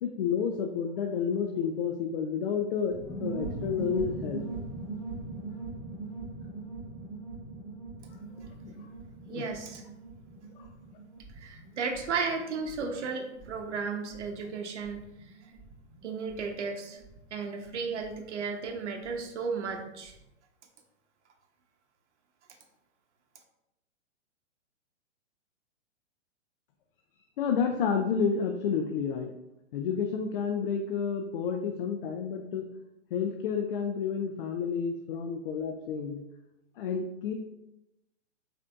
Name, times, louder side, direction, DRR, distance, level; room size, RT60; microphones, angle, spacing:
voice 1, 0.0-4.4 8.6-8.9 9.3-9.4 10.6-10.7 27.4-29.3 29.7-32.7 33.1-36.2 36.8-37.3, left 6 dB, 50° left, 4 dB, 0.4 m, -30 dB
sound 1, 2.9-19.2 19.4-19.5 19.7-20.2, right 3 dB, 5° right, 1.5 m, -42 dB
voice 2, 9.3-9.8 11.3-15.0 16.0-17.0 17.3-20.1, right 5 dB, 70° right, 3 dB, 0.8 m, -34 dB
4.8 x 2.7 x 2.3 m, 0.89 s
hypercardioid pair, 125°, 36 cm